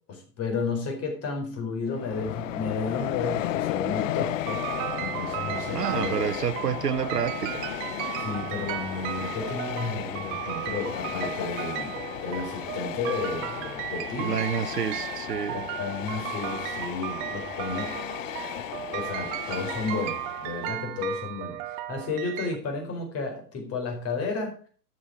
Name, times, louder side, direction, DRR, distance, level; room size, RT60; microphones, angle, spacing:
voice 1, 0.1-6.3 8.2-14.4 15.5-18.0 18.6-18.7 18.9-24.7, left 4 dB, 30° left, 4.6 m, -32 dB
Train, 1.9-20.8, left 13 dB, 50° left, 0.7 m, -35 dB
sound 1, 4.5-22.6, right 14 dB, 35° right, 1.0 m, -35 dB
voice 2, 5.7-7.6 14.2-15.6, right 8 dB, 75° right, 1.0 m, -29 dB
12.5 x 7.8 x 4.9 m
figure-of-eight pair, 100°, 48 cm